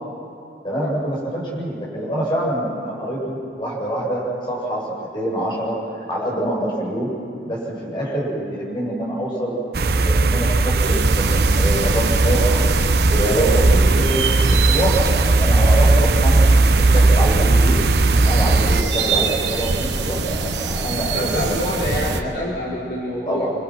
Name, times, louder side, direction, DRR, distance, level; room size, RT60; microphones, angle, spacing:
voice 1, 0.6-4.8 5.1-5.8 6.1-7.1 7.5-11.3 11.5-12.6 13.1-16.4 16.7-17.7 18.2-21.4 21.9-22.1 23.3-23.5, right 1 dB, 25° left, -4 dB, 7.6 m, -25 dB
sound 1, 9.7-18.8, right 2 dB, 60° right, 0.7 m, -17 dB
sound 2, 10.8-22.2, right 4 dB, 75° right, 1.4 m, -25 dB
voice 2, 20.9-23.5, left 1 dB, 65° left, -5 dB, 4.8 m, -27 dB
30.0 x 25.0 x 6.1 m, 2.8 s
head